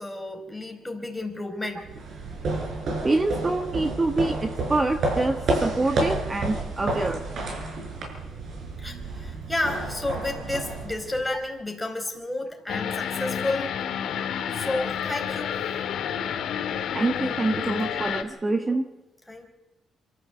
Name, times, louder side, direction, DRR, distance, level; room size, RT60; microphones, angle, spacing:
voice 1, 0.0-1.9 8.8-13.8 14.5-15.6 19.3-19.5, left 2 dB, 10° left, 3 dB, 4.8 m, -31 dB
sound 1, 1.8-11.5, right 2 dB, 65° right, 6.6 m, -30 dB
voice 2, 3.0-7.2 16.9-18.8, right 2 dB, 25° right, 6 dB, 1.5 m, -26 dB
sound 2, 12.7-18.2, left 8 dB, 75° left, 1.9 m, -30 dB
25.0 x 14.0 x 7.9 m, 0.97 s
cardioid pair, 90°, 0 cm